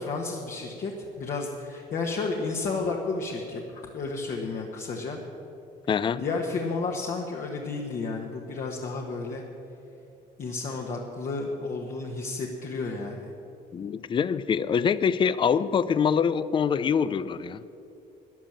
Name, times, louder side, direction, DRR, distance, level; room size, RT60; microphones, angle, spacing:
voice 1, 0.0-5.2 6.2-9.4 10.4-13.3, left 3 dB, 50° left, 0 dB, 1.4 m, -32 dB
voice 2, 5.9-6.2 13.7-17.6, left 7 dB, 30° left, 16 dB, 0.4 m, -24 dB
12.5 x 10.5 x 7.5 m, 2.7 s
cardioid pair, 110°, 17 cm